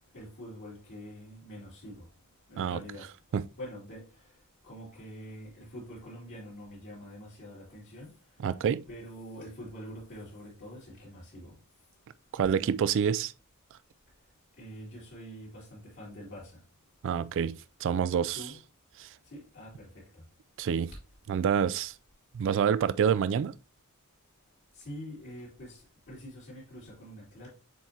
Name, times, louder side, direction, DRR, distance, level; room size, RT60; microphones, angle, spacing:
voice 1, 0.1-2.1 2.5-3.1 3.6-4.0 4.6-8.1 8.9-11.5 14.6-16.6 18.3-18.6 19.3-20.2 24.7-27.5, equal, 55° left, 2.9 m, -45 dB
voice 2, 8.4-8.8 12.3-13.3 17.0-18.5 19.0-19.1 20.6-20.9 21.3-21.9 22.3-23.5, right 7 dB, 60° right, 0.3 m, -27 dB
7.4 x 4.6 x 2.8 m
head